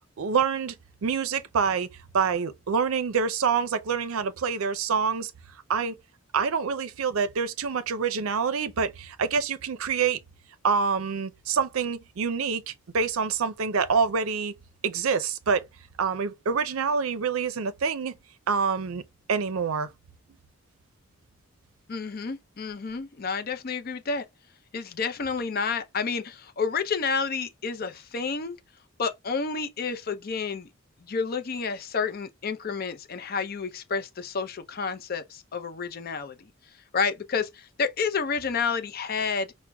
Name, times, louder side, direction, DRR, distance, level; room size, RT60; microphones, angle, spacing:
voice 1, 0.2-0.7 1.0-1.9 2.1-5.3 5.7-6.0 6.3-10.2 10.6-14.5 14.8-15.6 16.0-18.1 18.5-19.0 19.3-19.9, right 5 dB, 80° right, 0.5 m, -26 dB
voice 2, 21.9-24.2 24.7-28.6 29.0-30.7 31.0-36.5 36.9-39.5, left 5 dB, 45° left, 0.5 m, -30 dB
6.0 x 2.1 x 2.2 m
head